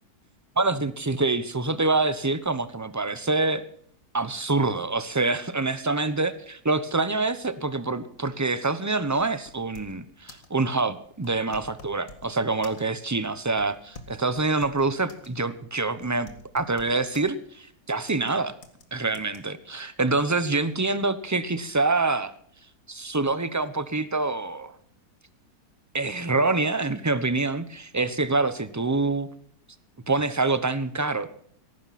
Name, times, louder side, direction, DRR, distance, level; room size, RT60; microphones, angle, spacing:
voice 1, 0.6-3.6 4.1-18.5 18.9-22.3 22.9-24.7 25.9-29.3 30.1-31.3, right 3 dB, 15° right, 13 dB, 0.7 m, -26 dB
sound 1, 9.2-10.0 10.3-10.6 11.2-12.3 12.6-13.1 13.6-15.3 15.6-15.7 16.0-17.3 18.1-18.3 18.6-18.8 19.1-19.4, left 3 dB, 55° left, 2.4 m, -47 dB
17.5 x 15.0 x 4.3 m, 0.63 s
omnidirectional pair, 1.7 m